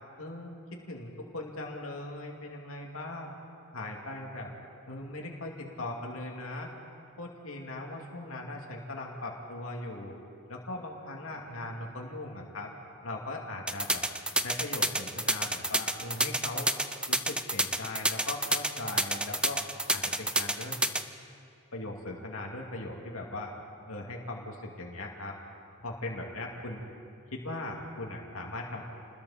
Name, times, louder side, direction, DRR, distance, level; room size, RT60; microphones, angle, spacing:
voice 1, 0.2-3.3 3.7-4.5 4.9-6.7 7.2-10.2 10.5-12.7 13.0-14.0 14.4-16.7 17.1-19.6 19.9-20.8 21.7-23.5 23.9-25.4 25.8-26.9 27.3-28.8, left 2 dB, 75° left, -1 dB, 2.5 m, -39 dB
sound 1, 13.7-21.0, right 1 dB, 5° right, 0.6 m, -28 dB
30.0 x 20.5 x 4.3 m, 2.5 s
head